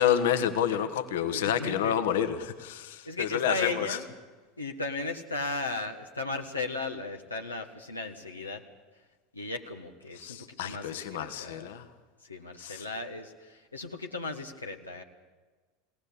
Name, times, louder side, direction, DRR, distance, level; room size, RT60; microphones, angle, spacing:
voice 1, 0.0-4.0 10.2-11.8 12.6-12.8, left 9 dB, 65° left, 10 dB, 1.5 m, -29 dB
voice 2, 1.1-1.9 3.0-4.1 4.6-8.6 9.3-10.4 10.6-11.7 12.3-15.0, left 3 dB, 85° left, 3 dB, 1.3 m, -36 dB
22.5 x 17.5 x 8.5 m, 1.4 s
figure-of-eight pair, 75°, 0 cm